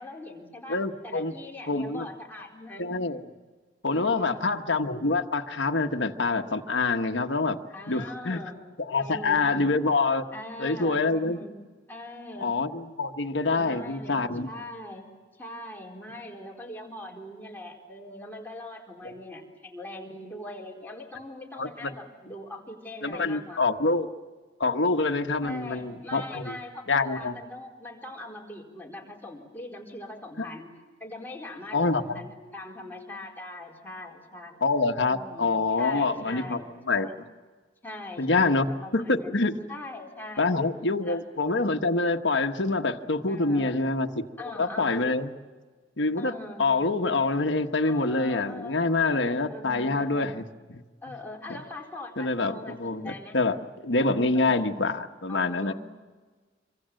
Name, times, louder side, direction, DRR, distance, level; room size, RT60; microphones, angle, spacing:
voice 1, 0.0-3.0 3.9-4.6 7.7-8.6 9.0-9.7 10.3-11.5 11.9-12.5 13.5-15.0 15.4-23.9 25.4-30.7 31.0-34.6 35.1-37.2 37.8-39.4 39.7-40.6 41.0-41.2 43.3-43.9 44.4-45.1 46.2-46.9 47.9-50.5 51.0-53.4 54.3-54.8 55.3-55.7, left 1 dB, 10° left, -1 dB, 4.3 m, -41 dB
voice 2, 0.7-1.3 1.7-2.1 2.8-3.2 3.8-7.6 7.9-8.4 8.8-10.3 10.6-11.4 12.4-14.5 19.0-19.1 21.6-21.9 23.0-24.1 24.6-26.6 26.9-27.4 30.4-30.5 31.7-32.2 34.6-36.6 36.9-37.1 38.2-39.5 40.4-44.3 44.6-45.3 46.0-46.3 46.6-50.4 50.7-50.8 52.2-53.6 53.8-55.7, left 3 dB, 70° left, 5 dB, 1.3 m, -26 dB
26.0 x 24.5 x 7.7 m, 1.4 s
head